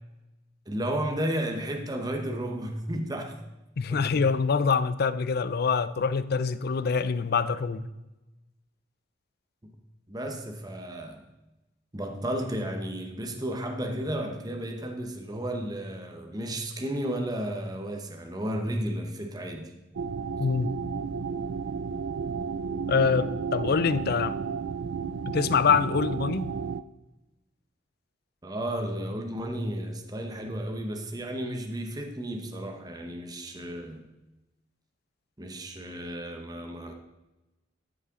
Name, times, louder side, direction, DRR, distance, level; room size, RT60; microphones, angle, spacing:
voice 1, 0.7-3.4 3.9-4.2 9.6-9.7 10.1-11.2 11.9-19.7 28.4-34.1 35.4-36.9, right 1 dB, 20° right, 0.9 m, -33 dB
voice 2, 3.8-7.8 20.4-20.7 22.9-24.4 25.3-26.5, left 5 dB, 55° left, 0.4 m, -25 dB
sound 1, 19.9-26.8, right 5 dB, 75° right, 0.4 m, -32 dB
12.5 x 7.2 x 3.7 m
head